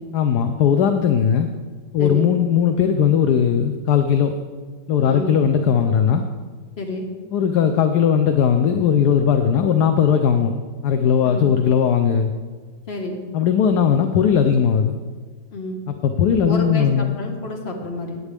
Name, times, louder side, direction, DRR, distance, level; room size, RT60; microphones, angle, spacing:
voice 1, 0.1-1.5 1.9-4.4 4.9-6.2 7.3-12.3 13.3-15.0 15.9-17.2, left 7 dB, 70° left, 7 dB, 1.1 m, -18 dB
voice 2, 2.0-2.3 5.0-5.3 6.8-7.1 11.2-11.5 12.9-13.2 15.5-15.8 16.4-18.2, left 2 dB, 35° left, 1 dB, 1.6 m, -29 dB
15.5 x 9.6 x 3.4 m, 1.5 s
omnidirectional pair, 2.0 m